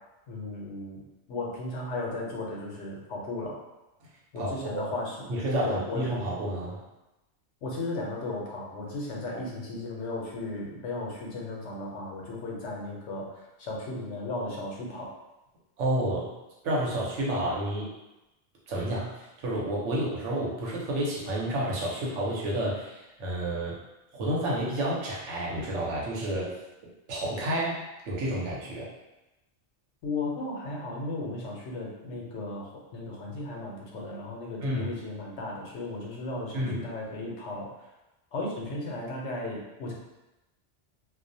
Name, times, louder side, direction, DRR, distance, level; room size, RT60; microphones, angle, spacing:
voice 1, 0.3-3.6 4.3-5.2 5.6-6.0 7.6-15.1 30.0-37.9 38.3-39.9, left 2 dB, 85° left, -2 dB, 0.9 m, -35 dB
voice 2, 4.4-4.8 5.3-6.8 15.8-16.3 16.6-17.9 18.7-23.8 24.1-26.5 27.1-28.9 34.6-34.9 36.5-36.8, right 1 dB, 90° right, -4 dB, 1.0 m, -30 dB
2.4 x 2.0 x 2.6 m, 0.98 s
omnidirectional pair, 1.2 m